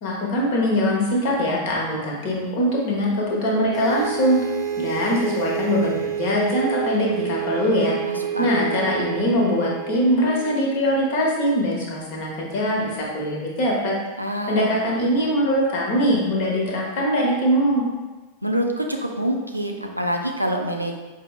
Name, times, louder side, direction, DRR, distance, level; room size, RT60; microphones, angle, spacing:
voice 1, 0.0-4.4 4.8-8.0 8.4-13.9 14.5-17.8, equal, 50° left, -2 dB, 0.9 m, -22 dB
sound 1, 3.7-11.5, right 9 dB, 35° right, 0.5 m, -29 dB
voice 2, 8.0-8.8 14.2-14.7 18.4-21.0, equal, 90° right, 2 dB, 0.4 m, -26 dB
4.9 x 2.0 x 3.1 m, 1.2 s
figure-of-eight pair, 90°, 0 cm